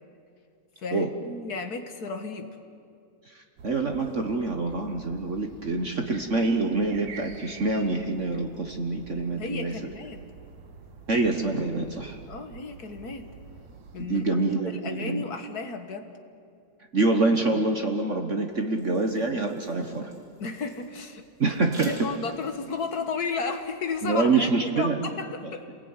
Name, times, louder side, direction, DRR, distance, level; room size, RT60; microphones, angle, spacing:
voice 1, 0.8-2.5 9.4-10.2 12.3-13.3 13.9-14.2 14.6-16.2 20.4-25.6, left 4 dB, 40° left, 6 dB, 1.5 m, -33 dB
voice 2, 3.3-9.7 11.1-12.2 14.0-15.2 16.9-20.1 21.4-22.1 24.0-25.1 25.4-25.5, right 3 dB, 60° right, 4 dB, 0.7 m, -26 dB
sound 1, 3.6-14.0, right 5 dB, 75° right, 3.2 m, -47 dB
sound 2, 18.5-24.1, right 3 dB, 35° right, 3.9 m, -48 dB
27.5 x 21.0 x 9.7 m, 2.4 s
omnidirectional pair, 3.3 m